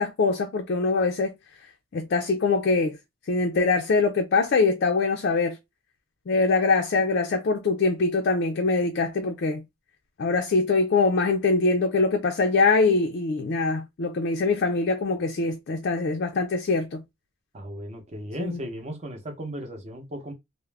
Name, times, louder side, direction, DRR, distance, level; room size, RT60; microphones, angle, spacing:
voice 1, 0.0-1.3 1.9-3.0 3.3-5.6 6.3-9.6 10.2-17.0 18.4-18.6, left 3 dB, 50° left, 0.4 m, -23 dB
voice 2, 17.5-20.3, right 1 dB, 30° right, 0.7 m, -36 dB
2.3 x 2.0 x 3.2 m
head